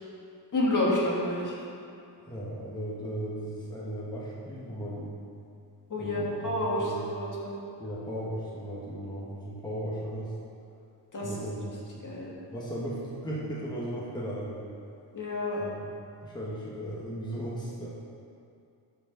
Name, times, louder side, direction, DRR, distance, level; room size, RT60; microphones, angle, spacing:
voice 1, 0.5-1.6 5.9-7.5 11.1-11.3 12.0-12.3 15.1-15.6, left 1 dB, 45° left, -5 dB, 1.8 m, -29 dB
voice 2, 2.2-5.1 5.9-7.1 7.8-10.3 11.2-12.0 12.5-14.6 15.5-15.9 16.2-17.9, right 1 dB, 10° left, -6 dB, 1.4 m, -36 dB
12.0 x 4.9 x 3.9 m, 2.5 s
wide cardioid pair, 105°, 43 cm